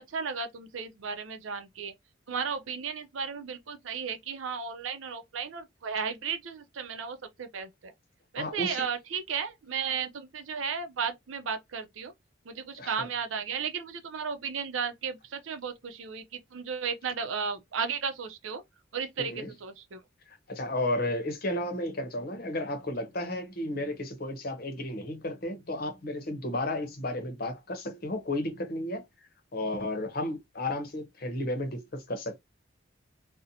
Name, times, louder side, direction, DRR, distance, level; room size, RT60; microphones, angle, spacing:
voice 1, 0.0-1.9 2.3-7.9 8.3-12.1 12.4-18.6 18.9-20.0, right 6 dB, 85° right, 0.5 m, -34 dB
voice 2, 8.4-8.9 12.8-13.1 19.2-19.5 20.3-29.0 29.5-32.4, left 1 dB, 50° left, 0.7 m, -33 dB
2.6 x 2.1 x 2.7 m
head